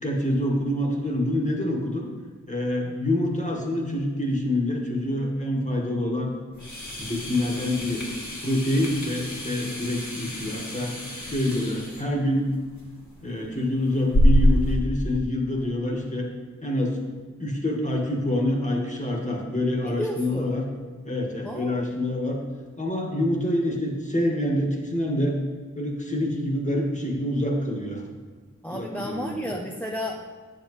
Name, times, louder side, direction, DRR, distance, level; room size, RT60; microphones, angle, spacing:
voice 1, 0.0-2.1 2.5-6.3 7.0-8.0 8.4-10.9 11.2-12.5 13.2-16.3 16.6-17.0 17.4-20.7 21.0-22.4 22.8-25.4 25.7-28.0 28.7-29.6, left 1 dB, 25° left, -1 dB, 1.8 m, -26 dB
sound 1, 6.5-14.7, equal, 65° left, 1.9 m, -27 dB
voice 2, 19.8-20.5 21.4-21.9 28.6-30.2, equal, 5° left, 0 dB, 0.7 m, -32 dB
8.8 x 7.5 x 3.2 m, 1.5 s
wide cardioid pair, 45°, 32 cm